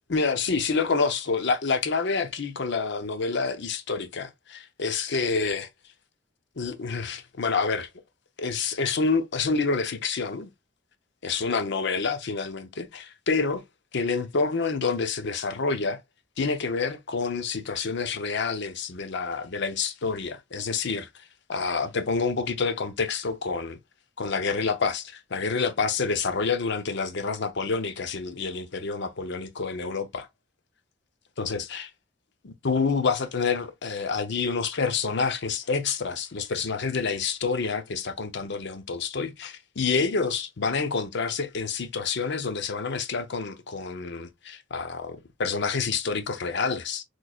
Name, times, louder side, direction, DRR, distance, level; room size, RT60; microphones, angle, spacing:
voice 1, 0.1-5.7 6.6-7.9 8.4-10.5 11.2-13.6 13.9-16.0 16.4-21.2 21.5-23.8 24.2-30.3 31.4-31.9 32.4-47.0, left 4 dB, 60° left, 0.7 m, -28 dB
6.3 x 3.1 x 2.3 m
head